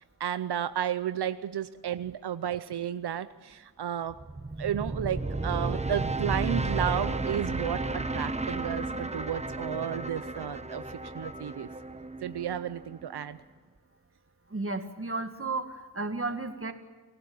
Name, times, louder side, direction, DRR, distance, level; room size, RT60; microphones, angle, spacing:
voice 1, 0.0-4.2 4.6-11.7 12.2-13.4, right 10 dB, 85° right, 13 dB, 0.7 m, -33 dB
Braaam Absynth, 4.1-13.2, right 2 dB, 15° right, 1.0 m, -33 dB
voice 2, 14.5-16.7, right 3 dB, 35° right, 7 dB, 2.0 m, -33 dB
28.0 x 16.0 x 8.7 m, 1.3 s
wide cardioid pair, 75°, 39 cm